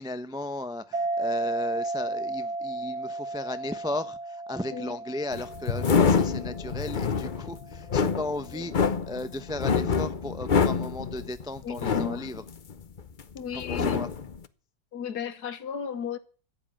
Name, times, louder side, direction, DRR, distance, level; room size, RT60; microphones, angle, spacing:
voice 1, 0.0-12.5 13.7-14.1, left 1 dB, 5° right, 0.3 m, -35 dB
sound 1, 0.9-8.0, right 2 dB, 60° right, 1.8 m, -34 dB
sound 2, 5.3-13.2 13.5-14.4, left 5 dB, 45° left, 0.6 m, -26 dB
voice 2, 11.6-12.3 13.4-14.1 14.9-16.2, left 7 dB, 60° left, 1.7 m, -34 dB
14.5 x 10.0 x 8.7 m
omnidirectional pair, 1.9 m